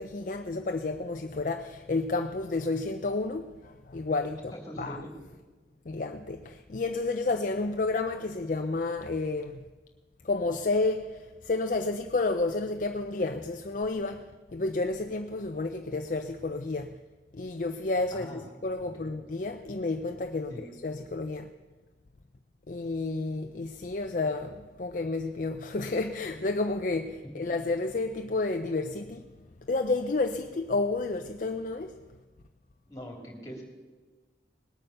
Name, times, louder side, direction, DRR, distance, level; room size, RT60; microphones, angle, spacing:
voice 1, 0.0-4.5 4.8-5.0 5.9-9.6 10.2-14.2 14.5-16.9 17.3-20.5 20.8-21.5 22.7-29.2 29.7-31.9, left 3 dB, 45° left, 0.5 m, -31 dB
voice 2, 4.5-5.1 18.1-18.4 18.8-19.1 20.5-20.6 32.9-33.6, equal, 20° left, 3.0 m, -42 dB
19.5 x 8.9 x 6.6 m
head